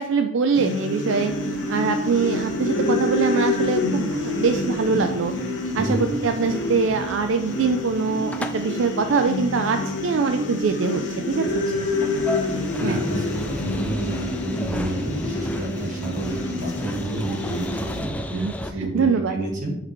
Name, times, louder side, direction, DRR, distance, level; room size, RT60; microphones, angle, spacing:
voice 1, 0.0-5.3 5.7-11.5 12.8-13.0 18.3-19.4, right 5 dB, 75° right, 7 dB, 0.4 m, -23 dB
sound 1, 0.5-18.0, left 2 dB, 60° left, 1.1 m, -27 dB
sound 2, 1.2-18.7, left 1 dB, 5° left, 0.3 m, -37 dB
voice 2, 5.7-6.0 11.5-11.9 12.8-19.8, right 1 dB, 40° right, 0 dB, 1.7 m, -29 dB
6.8 x 5.1 x 3.1 m, 0.81 s
head